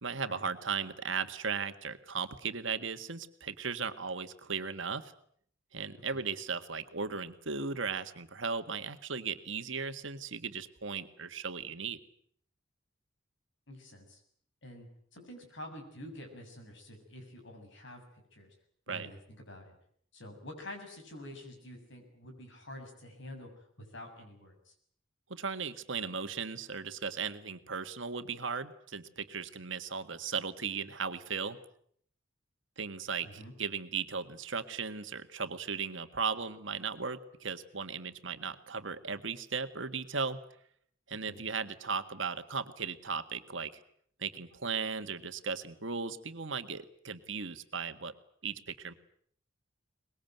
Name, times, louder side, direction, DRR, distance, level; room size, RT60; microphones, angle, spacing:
voice 1, 0.0-5.1 5.7-12.0 18.9-19.1 25.3-31.6 32.8-40.4 41.1-43.7 44.2-48.1 48.4-48.9, right 5 dB, 70° right, 9 dB, 1.7 m, -37 dB
voice 2, 13.7-14.2 14.6-18.5 18.9-19.7 20.1-24.7 33.2-33.5 41.2-41.4, left 1 dB, 65° left, 5 dB, 7.0 m, -48 dB
23.5 x 21.0 x 9.2 m, 0.64 s
head